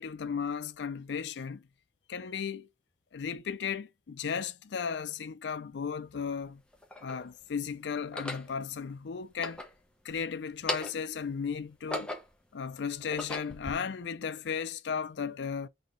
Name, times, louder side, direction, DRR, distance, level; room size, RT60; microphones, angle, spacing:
voice 1, 0.0-1.6 2.1-2.7 3.1-6.6 7.0-9.6 10.0-12.1 12.5-15.7, left 6 dB, 70° left, 0.4 m, -35 dB
sound 1, 5.5-5.6 6.4-7.3 8.0-8.5 9.2-10.2 10.5-11.1 11.6-12.5 13.0-13.7, left 1 dB, 5° left, 1.0 m, -38 dB
4.2 x 4.0 x 3.2 m
head